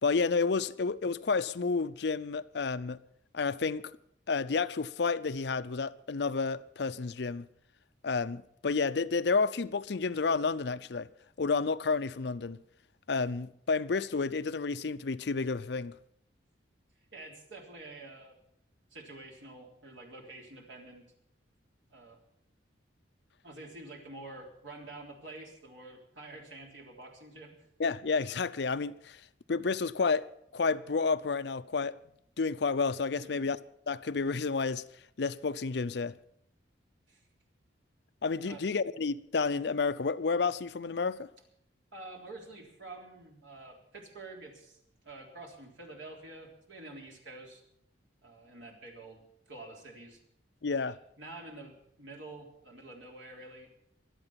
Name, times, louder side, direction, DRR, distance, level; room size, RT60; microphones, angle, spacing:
voice 1, 0.0-3.0 3.3-3.8 4.3-7.5 8.0-11.1 11.4-12.6 13.1-15.9 27.8-29.2 29.5-30.3 30.5-32.0 32.4-33.6 33.9-34.8 35.2-36.1 38.2-41.3 50.6-51.0, left 4 dB, 60° left, 0.5 m, -30 dB
voice 2, 17.1-18.3 18.9-21.1 21.9-22.2 23.4-27.7 33.2-33.5 37.1-37.2 38.4-38.6 41.9-47.6 48.2-49.2 49.5-50.2 50.9-53.7, right 2 dB, 80° right, 3.6 m, -48 dB
23.5 x 8.9 x 5.8 m
head